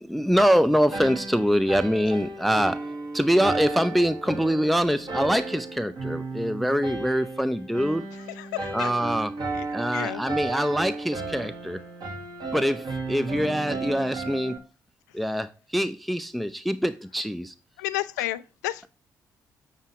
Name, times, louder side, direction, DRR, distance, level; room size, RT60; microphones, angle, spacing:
voice 1, 0.0-8.1 8.7-9.3 9.7-11.8 12.5-14.6 15.1-17.5, equal, ahead, 0.5 m, -24 dB
sound 1, 0.9-14.6, right 3 dB, 50° right, 2.1 m, -34 dB
voice 2, 8.1-8.9 9.5-9.7 9.9-10.2 17.8-18.9, left 16 dB, 80° left, 0.4 m, -32 dB
7.5 x 7.3 x 2.9 m
figure-of-eight pair, 40°, 9 cm